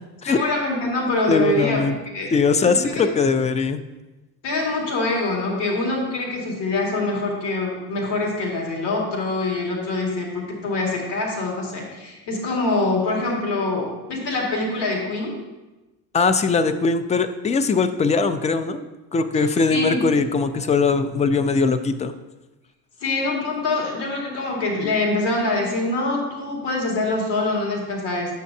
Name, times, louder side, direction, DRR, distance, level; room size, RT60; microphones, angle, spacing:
voice 1, 0.3-1.8 2.0-2.3 2.6-3.1 4.4-15.4 19.7-20.1 23.0-28.4, left 2 dB, 65° left, -1 dB, 2.0 m, -24 dB
voice 2, 1.3-2.0 2.3-3.8 16.1-22.1, left 4 dB, 15° left, 10 dB, 0.3 m, -20 dB
9.2 x 6.3 x 2.7 m, 1.1 s
supercardioid pair, 80°, 45 cm